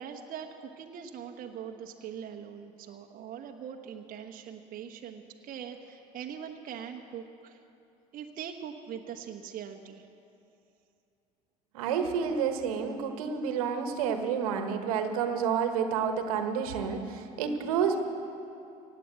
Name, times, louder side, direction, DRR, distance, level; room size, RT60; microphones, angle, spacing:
voice 1, 0.0-7.6 8.1-10.1, right 8 dB, 50° right, 3 dB, 1.0 m, -42 dB
voice 2, 11.7-18.0, right 7 dB, 80° right, 6 dB, 1.3 m, -29 dB
17.0 x 8.7 x 8.0 m, 2.6 s
hypercardioid pair, 70°, 18 cm